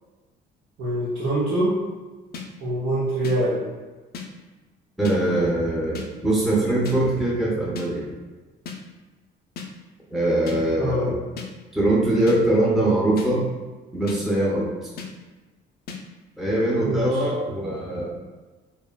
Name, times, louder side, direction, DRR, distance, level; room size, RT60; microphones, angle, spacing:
voice 1, 0.8-1.7 2.6-3.6 10.8-11.1 16.8-17.2, right 1 dB, 70° right, -9 dB, 0.8 m, -24 dB
sound 1, 2.3-2.5 3.2-3.4 4.1-4.3 5.0-5.2 5.9-6.1 6.9-7.0 7.8-7.9 8.7-8.8 9.6-9.7 10.5-10.6 11.4-11.5 12.3-12.4 13.2-13.3 14.1-14.2 15.0-15.1 15.9-16.0, left 6 dB, 50° left, 0.4 m, -34 dB
voice 2, 5.0-8.0 10.1-11.2 11.7-13.5 13.9-14.9 16.4-18.1, right 1 dB, ahead, -6 dB, 0.6 m, -22 dB
3.0 x 2.1 x 2.2 m, 1.2 s
cardioid pair, 95°, 21 cm